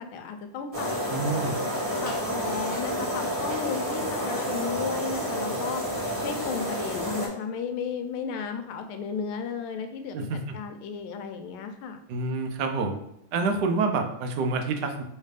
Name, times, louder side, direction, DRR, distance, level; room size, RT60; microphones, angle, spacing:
voice 1, 0.0-0.9 2.0-5.8 6.2-12.0, left 6 dB, 80° left, 7 dB, 1.4 m, -34 dB
sound 1, 0.7-7.3, equal, 20° right, 1.2 m, -30 dB
voice 2, 1.1-1.6 10.1-10.4 12.1-13.0 13.3-15.0, right 3 dB, 70° right, 4 dB, 1.0 m, -27 dB
3.3 x 3.3 x 4.8 m, 0.76 s
omnidirectional pair, 2.3 m